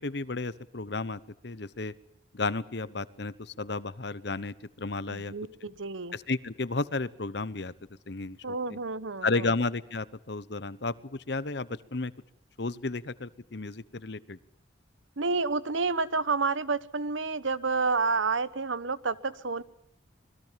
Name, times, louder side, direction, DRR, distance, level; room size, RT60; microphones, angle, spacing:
voice 1, 0.0-1.9 2.3-5.3 5.6-5.7 6.1-7.7 8.1-8.8 9.2-12.1 12.6-14.4, left 3 dB, 60° left, 17 dB, 1.0 m, -33 dB
voice 2, 5.1-6.2 8.4-9.5 15.2-19.6, right 4 dB, 80° right, 17 dB, 1.1 m, -29 dB
26.0 x 21.0 x 7.5 m, 0.70 s
head